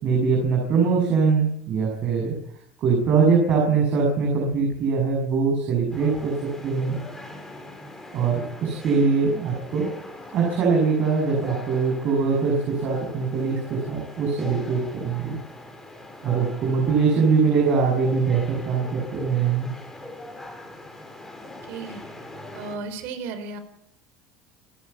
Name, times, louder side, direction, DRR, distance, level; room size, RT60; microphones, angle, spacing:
voice 1, 0.0-2.3 2.8-6.3 6.6-7.0 8.1-9.9 10.3-12.6 12.8-15.4 16.2-19.7, right 5 dB, 40° right, -1 dB, 7.2 m, -22 dB
sound 1, 5.9-22.8, left 1 dB, 5° left, 4.8 m, -41 dB
voice 2, 21.4-22.0 22.5-23.6, right 4 dB, 65° right, 9 dB, 4.2 m, -35 dB
28.0 x 11.5 x 8.4 m, 0.76 s
cardioid pair, 145°, 4 cm